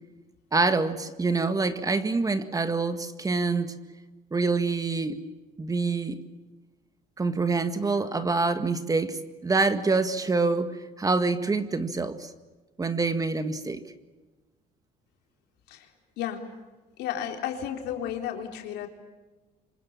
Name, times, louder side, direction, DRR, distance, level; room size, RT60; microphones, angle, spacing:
voice 1, 0.5-3.7 4.3-5.2 5.6-6.2 7.2-10.7 11.0-12.3 12.8-13.8, right 3 dB, 20° right, 9 dB, 1.9 m, -26 dB
voice 2, 16.2-16.5 17.0-18.9, left 9 dB, 85° left, 3 dB, 4.0 m, -33 dB
28.0 x 25.5 x 7.2 m, 1.2 s
cardioid pair, 110°, 17 cm